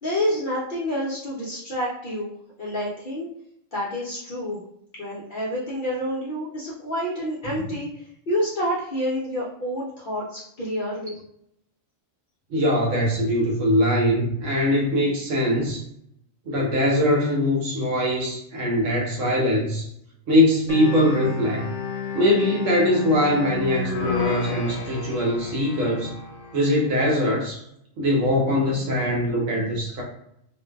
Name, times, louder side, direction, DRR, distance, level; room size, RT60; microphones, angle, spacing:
voice 1, 0.0-2.3 2.6-3.3 3.7-4.6 4.9-7.9 8.3-11.1, equal, 55° left, -5 dB, 0.6 m, -28 dB
voice 2, 12.5-15.8 16.5-19.9 20.3-21.7 22.1-26.1 26.5-27.6 28.0-30.0, left 1 dB, 70° right, -2 dB, 1.1 m, -22 dB
sound 1, 20.7-26.6, left 4 dB, 75° left, 0.9 m, -31 dB
2.5 x 2.2 x 2.2 m, 0.72 s
omnidirectional pair, 1.3 m